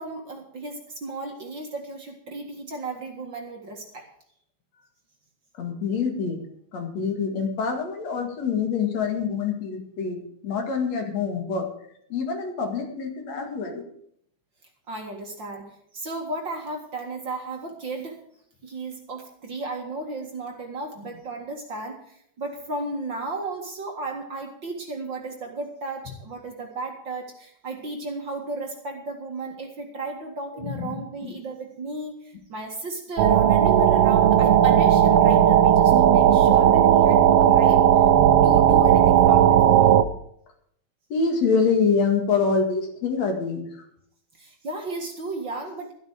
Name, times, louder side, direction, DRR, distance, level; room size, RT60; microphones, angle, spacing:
voice 1, 0.0-4.1 14.9-18.2 18.6-38.1 38.4-40.0 44.3-45.9, right 2 dB, 40° right, 2 dB, 2.3 m, -34 dB
voice 2, 5.6-6.4 6.7-11.7 12.1-13.9 30.6-31.3 41.1-43.6, left 5 dB, 60° left, 4 dB, 3.1 m, -26 dB
sound 1, 33.2-40.0, right 10 dB, 70° right, 1.6 m, -16 dB
13.0 x 12.0 x 5.0 m, 0.68 s
omnidirectional pair, 3.4 m